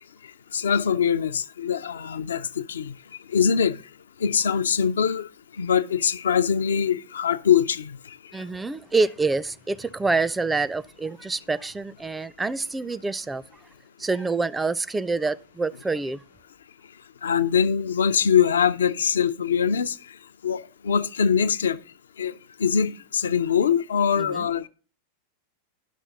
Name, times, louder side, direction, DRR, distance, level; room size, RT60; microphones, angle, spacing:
voice 1, 0.5-2.9 3.3-3.8 4.2-5.3 5.6-8.2 17.2-20.0 20.4-21.8 22.2-22.3 22.6-24.7, left 7 dB, 65° left, 0.4 m, -23 dB
voice 2, 8.3-13.4 14.0-16.2 24.2-24.5, right 3 dB, 10° right, 0.4 m, -26 dB
11.0 x 6.1 x 3.8 m
figure-of-eight pair, 90°, 0 cm